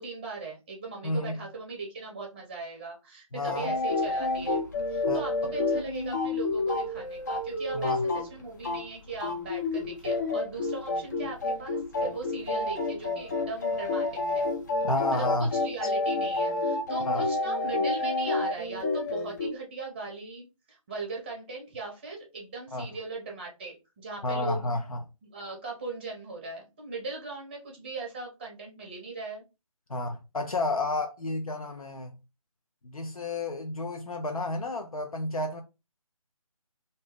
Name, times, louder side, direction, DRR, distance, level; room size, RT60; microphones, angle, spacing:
voice 1, 0.0-4.6 4.9-14.5 15.1-24.8 25.3-29.4, right 3 dB, 20° right, 0.7 m, -39 dB
voice 2, 1.0-1.3 3.3-3.7 5.1-5.2 7.7-8.0 14.8-15.5 17.0-17.3 22.7-22.9 24.2-25.0 29.9-32.1 32.8-35.6, left 2 dB, 80° left, 0.6 m, -31 dB
sound 1, 3.5-8.9 9.1-19.5, left 2 dB, 30° left, 0.5 m, -29 dB
2.6 x 2.1 x 3.6 m
figure-of-eight pair, 150°, 18 cm